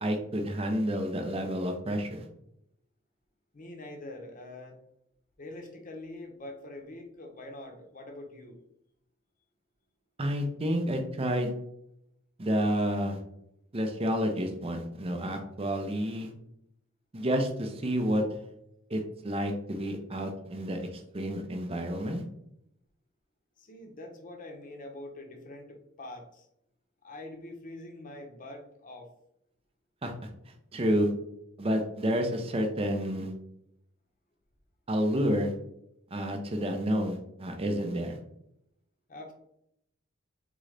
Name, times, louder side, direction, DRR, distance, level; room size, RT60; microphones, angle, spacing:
voice 1, 0.0-2.3 10.2-11.5 12.4-13.2 13.7-16.3 17.1-18.2 18.9-22.2 30.0-30.1 30.7-31.1 31.6-33.3 34.9-35.5 36.1-38.2, equal, 30° right, 4 dB, 0.6 m, -29 dB
voice 2, 3.5-4.8 5.4-8.6 23.6-26.5 27.0-29.1 39.1-39.3, left 1 dB, 40° left, 3 dB, 0.8 m, -44 dB
3.8 x 3.8 x 3.3 m, 0.78 s
head